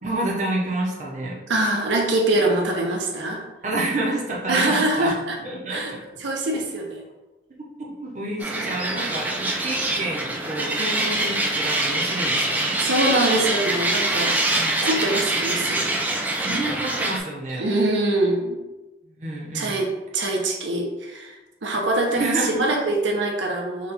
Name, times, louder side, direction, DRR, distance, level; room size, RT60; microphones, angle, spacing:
voice 1, 0.0-1.4 3.6-5.8 7.8-12.8 14.5-14.8 16.4-17.6 19.0-19.8 22.2-22.7, right 2 dB, 40° right, -3 dB, 0.7 m, -29 dB
voice 2, 1.5-3.4 4.5-5.4 5.7-5.9 6.2-7.0 10.7-11.0 12.8-14.5 14.8-15.9 17.6-18.6 19.5-21.4 21.6-23.9, right 2 dB, 80° right, 1 dB, 0.7 m, -24 dB
sound 1, 8.4-17.2, right 2 dB, 10° right, 0.3 m, -24 dB
4.1 x 2.3 x 4.0 m, 1.1 s
head